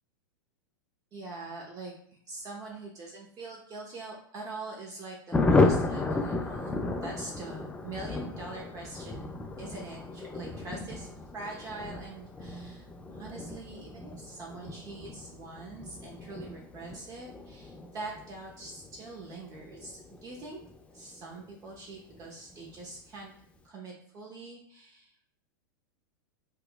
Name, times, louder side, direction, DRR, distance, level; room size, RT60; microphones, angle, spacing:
voice 1, 1.1-6.7 7.0-9.3 9.6-20.6 20.9-23.3 23.6-25.2, right 3 dB, 30° right, -2 dB, 0.7 m, -43 dB
Thunder, 5.3-21.4 21.7-21.8 22.1-22.2 22.5-22.9, left 3 dB, 10° left, 0.4 m, -33 dB
4.6 x 2.2 x 2.2 m, 0.65 s
hypercardioid pair, 110°, 11 cm